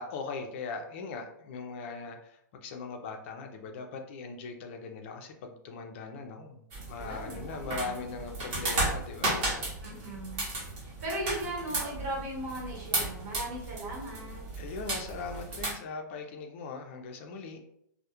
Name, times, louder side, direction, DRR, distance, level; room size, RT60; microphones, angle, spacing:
voice 1, 0.0-9.7 14.6-17.6, left 4 dB, 35° left, 4 dB, 0.4 m, -40 dB
sound 1, 6.7-15.7, right 2 dB, 35° right, 0.9 m, -34 dB
voice 2, 7.0-8.0 9.8-10.4 10.8-14.4, right 1 dB, 50° right, -4 dB, 1.2 m, -38 dB
2.2 x 2.0 x 2.8 m, 0.75 s
hypercardioid pair, 160°, 11 cm